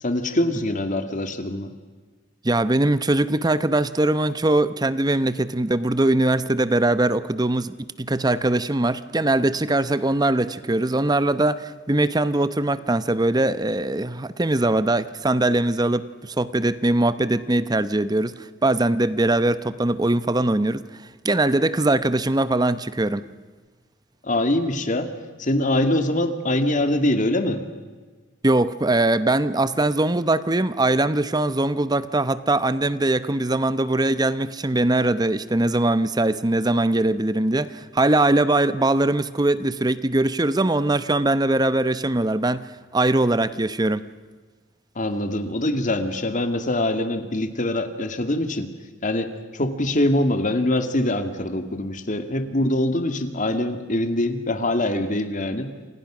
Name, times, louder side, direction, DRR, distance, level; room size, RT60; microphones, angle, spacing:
voice 1, 0.0-1.7 24.2-25.1 25.4-27.6 45.0-48.7 49.0-55.7, left 1 dB, 40° left, 8 dB, 2.1 m, -23 dB
voice 2, 2.4-20.8 21.2-23.3 28.4-42.6 42.9-44.1, right 2 dB, 20° right, 14 dB, 0.8 m, -21 dB
28.5 x 27.0 x 6.2 m, 1.4 s
head